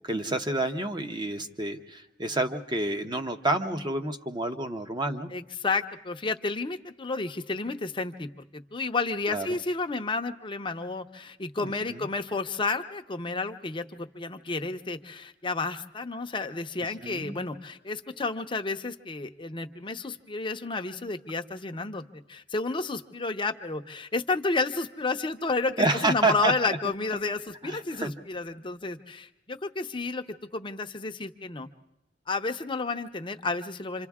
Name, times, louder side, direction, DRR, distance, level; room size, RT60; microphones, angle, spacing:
voice 1, 0.1-5.3 9.3-9.5 11.6-12.0 17.0-17.3 25.8-26.8 27.6-28.1, right 2 dB, 25° right, 6 dB, 0.9 m, -29 dB
voice 2, 5.3-22.0 22.3-30.2 30.5-31.7 32.3-34.1, left 3 dB, 30° left, 6 dB, 0.7 m, -31 dB
27.0 x 26.5 x 3.6 m, 0.86 s
head